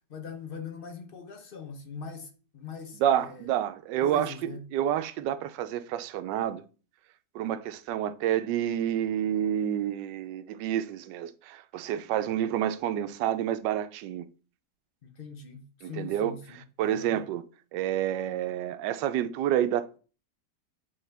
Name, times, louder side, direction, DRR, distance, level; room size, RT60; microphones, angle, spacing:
voice 1, 0.1-3.5 4.0-4.7 15.0-17.3, left 6 dB, 50° left, 0.6 m, -42 dB
voice 2, 3.0-6.6 7.3-14.3 15.8-16.4 16.8-17.4 17.7-20.0, right 11 dB, 85° right, 1.2 m, -29 dB
8.6 x 3.6 x 3.3 m
omnidirectional pair, 1.8 m